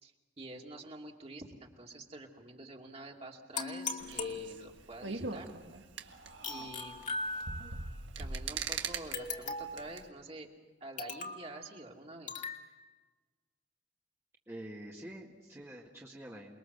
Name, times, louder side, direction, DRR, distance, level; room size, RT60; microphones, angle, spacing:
voice 1, 0.0-5.5 6.4-7.1 8.2-10.5 10.8-12.4, right 2 dB, 35° right, 0 dB, 2.6 m, -48 dB
sound 1, 3.6-5.0 6.4-7.9 9.1-9.9 11.0-11.5 12.3-12.6, left 4 dB, 40° left, 2.5 m, -39 dB
sound 2, 4.0-10.1, right 4 dB, 85° right, 1.7 m, -41 dB
voice 2, 14.5-16.6, right 1 dB, 15° right, -2 dB, 2.0 m, -47 dB
28.5 x 22.0 x 6.7 m, 1.3 s
head